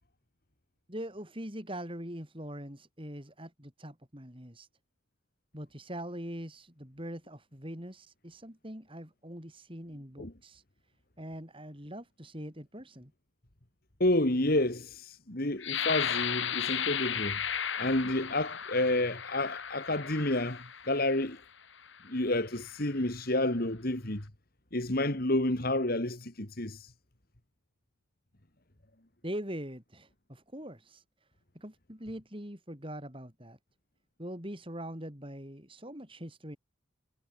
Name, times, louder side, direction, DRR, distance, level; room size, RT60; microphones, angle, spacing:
voice 1, 0.9-4.7 5.5-10.6 11.2-13.1 29.2-31.0 31.5-33.6 34.2-36.6, right 1 dB, 25° right, 6.8 m, -42 dB
voice 2, 14.0-17.4 17.8-21.4 22.0-24.2 24.7-26.9, left 1 dB, 50° left, 2.4 m, -30 dB
sound 1, 15.6-21.3 21.9-22.1 22.6-23.0, left 8 dB, 70° left, 2.9 m, -35 dB
head